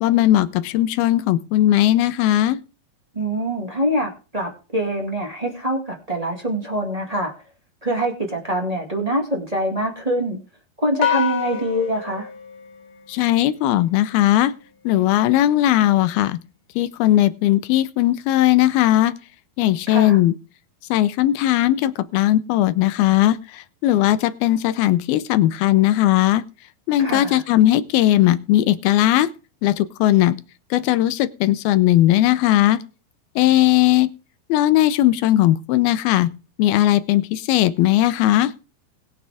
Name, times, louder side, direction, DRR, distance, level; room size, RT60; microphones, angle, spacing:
voice 1, 0.0-2.6 13.1-14.5 14.8-16.4 16.8-19.1 19.6-20.3 20.9-26.4 26.9-29.3 29.6-30.4 30.7-32.8 33.4-34.1 34.5-36.3 36.6-38.5, left 14 dB, 80° left, 13 dB, 2.5 m, -18 dB
voice 2, 3.1-7.3 7.8-10.4 10.8-12.3 19.9-20.2 27.0-27.4, right 1 dB, 20° right, 2 dB, 1.1 m, -24 dB
sound 1, 11.0-13.5, left 8 dB, 45° left, 1.9 m, -27 dB
20.5 x 7.4 x 3.5 m, 0.34 s
omnidirectional pair, 4.5 m